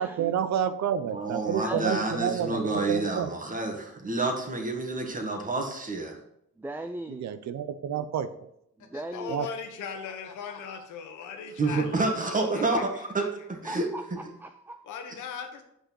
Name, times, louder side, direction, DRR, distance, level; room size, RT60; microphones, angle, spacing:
voice 1, 0.0-3.3 7.1-8.5 9.3-9.5, right 9 dB, 65° right, 0.6 m, -29 dB
voice 2, 1.0-6.2 11.6-13.2 13.5-14.3, right 2 dB, 25° right, 1.9 m, -29 dB
voice 3, 1.6-2.1 6.6-7.2 8.9-9.4 13.7-14.0 14.3-14.8, right 2 dB, 5° right, 0.4 m, -37 dB
voice 4, 8.8-13.3 14.8-15.6, left 6 dB, 80° left, 1.3 m, -39 dB
6.3 x 5.1 x 6.3 m
cardioid pair, 90°, 30 cm